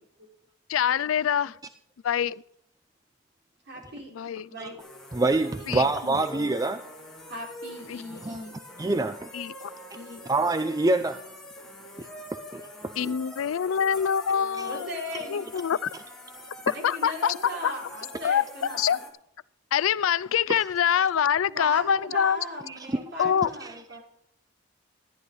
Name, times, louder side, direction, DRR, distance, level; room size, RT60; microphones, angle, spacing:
voice 1, 0.7-1.5 2.0-2.4 4.2-4.5 5.7-5.8 6.1-6.2 7.9-8.0 9.3-9.7 13.0-15.0 15.3-15.8 16.8-17.7 18.2-18.4 18.7-19.0 19.7-22.4 23.2-23.5, left 8 dB, 80° left, 0.4 m, -25 dB
voice 2, 3.6-4.1 4.5-4.8 5.6-5.8 7.3-8.6 9.9-10.2 14.6-15.5 16.7-19.0 21.5-24.0, equal, 55° right, 4.5 m, -38 dB
sound 1, 4.8-19.1, left 1 dB, 5° left, 2.2 m, -44 dB
voice 3, 5.1-6.9 8.2-8.4 8.8-9.3 10.3-11.2 12.0-12.1 12.5-13.1 14.6-14.7 22.7-23.0 23.6-23.7, right 2 dB, 20° right, 0.4 m, -26 dB
13.5 x 10.5 x 4.0 m
head